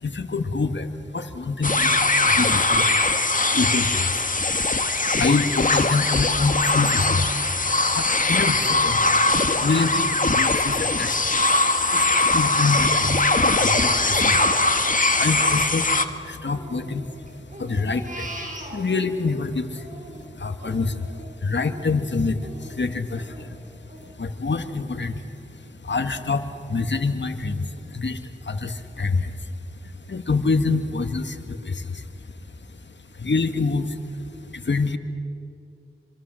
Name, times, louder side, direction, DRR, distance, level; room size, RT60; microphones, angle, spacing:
voice 1, 0.0-2.0 2.3-4.3 4.9-7.3 7.9-9.3 9.6-11.3 11.8-14.8 15.1-18.4 18.7-19.9 20.1-23.6 24.2-25.4 25.7-32.3 32.6-32.7 33.1-35.0, left 3 dB, 60° left, 8 dB, 1.9 m, -27 dB
sound 1, 1.6-16.1, left 2 dB, 40° left, 1.8 m, -21 dB
Crying sobbing, 10.9-13.3 13.6-16.1 16.5-19.3 19.7-25.2 25.6-25.7 26.1-26.7 27.2-27.3 27.7-27.9, right 1 dB, 40° right, 6.5 m, -42 dB
26.0 x 25.5 x 7.8 m, 2.6 s
cardioid pair, 40°, 21 cm